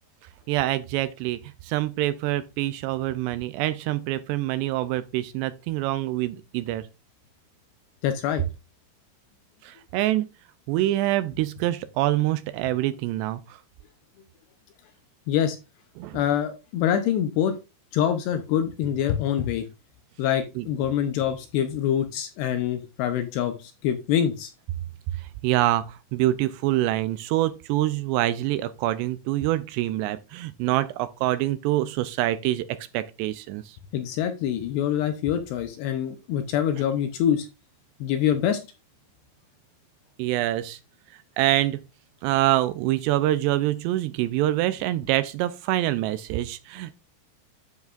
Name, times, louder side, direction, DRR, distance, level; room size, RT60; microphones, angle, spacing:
voice 1, 0.5-6.9 9.6-10.3 10.7-13.6 16.0-16.2 20.6-20.7 25.2-33.8 40.2-40.8 41.4-41.8 42.2-46.9, right 15 dB, 85° right, 2.5 m, -25 dB
voice 2, 8.0-8.4 15.3-15.6 16.1-17.6 17.9-19.7 20.2-24.5 33.9-37.5 38.0-38.6, left 9 dB, 75° left, 2.7 m, -25 dB
9.5 x 8.0 x 2.5 m
omnidirectional pair, 5.4 m